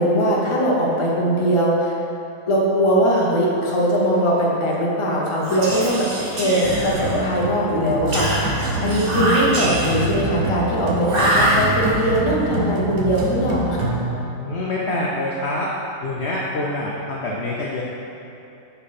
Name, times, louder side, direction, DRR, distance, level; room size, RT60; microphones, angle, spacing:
voice 1, 0.0-1.9 2.5-8.6 8.8-13.9, equal, 25° left, -4 dB, 0.8 m, -20 dB
Whispering, 5.4-7.4 8.1-10.2 11.0-12.1, right 1 dB, 40° right, 1.0 m, -23 dB
sound 1, 6.6-14.1, right 2 dB, 75° right, 1.4 m, -26 dB
voice 2, 14.4-15.7 16.0-17.8, left 2 dB, 60° left, -4 dB, 0.7 m, -26 dB
6.3 x 5.7 x 4.1 m, 2.8 s
omnidirectional pair, 1.8 m